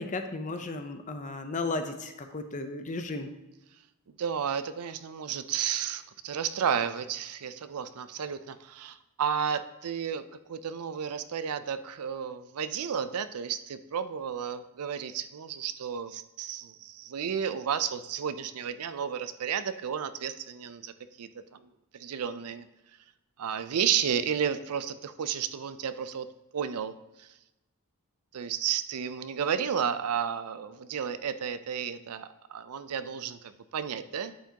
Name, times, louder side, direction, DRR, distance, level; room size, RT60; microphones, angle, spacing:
voice 1, 0.0-3.3, left 3 dB, 35° left, 7 dB, 0.7 m, -34 dB
voice 2, 4.2-20.9 21.2-21.6 21.9-22.7 23.4-26.3 26.5-27.3 28.3-34.3, right 8 dB, 85° right, 12 dB, 0.5 m, -32 dB
8.9 x 7.3 x 2.9 m, 0.98 s
head